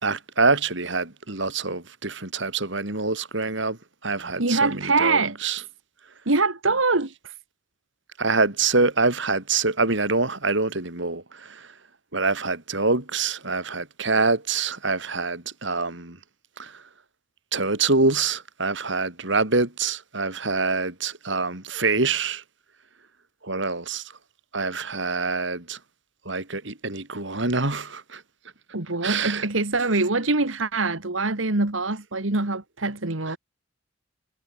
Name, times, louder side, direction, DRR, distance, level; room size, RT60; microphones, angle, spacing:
voice 1, 0.0-5.6 8.2-11.7 12.1-16.2 16.6-16.8 17.5-22.4 23.4-24.1 24.5-25.8 26.3-28.2 29.0-29.5 33.3-33.4, right 3 dB, 65° right, 4.0 m, -25 dB
voice 2, 4.4-5.4 6.3-7.1 28.7-33.4, right 3 dB, 80° right, 2.3 m, -24 dB
head